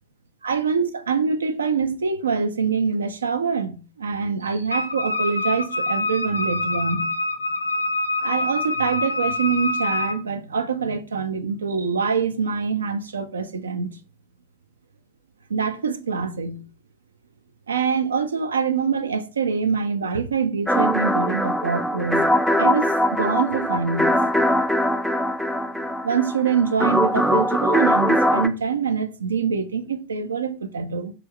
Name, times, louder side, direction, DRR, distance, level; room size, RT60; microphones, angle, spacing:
voice 1, 0.4-7.1 8.2-13.9 15.5-16.6 17.7-24.2 26.0-31.1, right 5 dB, 70° right, 0.4 m, -25 dB
Wind instrument woodwind instrument, 4.7-10.2, left 2 dB, 85° left, 0.6 m, -26 dB
sound 1, 20.7-28.5, equal, ahead, 0.3 m, -21 dB
4.2 x 2.3 x 3.6 m
figure-of-eight pair, 90°, 0 cm